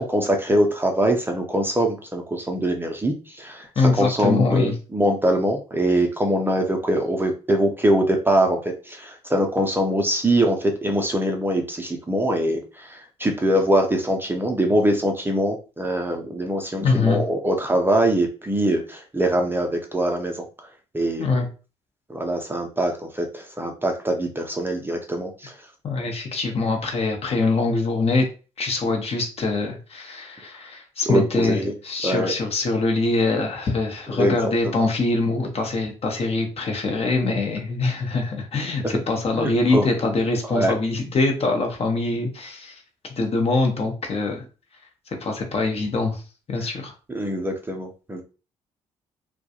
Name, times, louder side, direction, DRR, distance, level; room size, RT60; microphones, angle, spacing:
voice 1, 0.0-20.5 20.9-21.4 22.1-25.6 31.0-31.7 32.0-32.3 34.1-34.4 34.8-34.9 38.8-39.0 39.4-39.8 40.5-40.7 46.6-46.7 47.1-48.2, right 1 dB, 15° right, 3 dB, 0.5 m, -23 dB
voice 2, 3.8-4.7 16.8-17.2 21.2-21.5 25.8-28.3 28.6-42.8 43.2-44.5 45.2-46.2 46.5-46.9, left 3 dB, 40° left, 3 dB, 0.8 m, -23 dB
2.3 x 2.2 x 2.7 m, 0.34 s
figure-of-eight pair, 45°, 16 cm